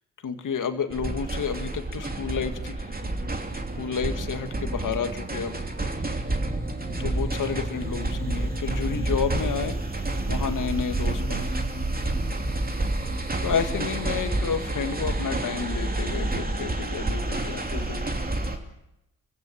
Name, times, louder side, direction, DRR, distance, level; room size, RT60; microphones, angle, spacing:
voice 1, 0.2-3.0 3.8-5.6 6.0-6.1 7.0-11.5 13.4-18.1, left 6 dB, 55° left, 7 dB, 2.4 m, -31 dB
sound 1, 0.9-18.6, right 2 dB, 25° right, 3.0 m, -29 dB
24.0 x 16.5 x 7.2 m, 0.89 s
hypercardioid pair, 40°, 38 cm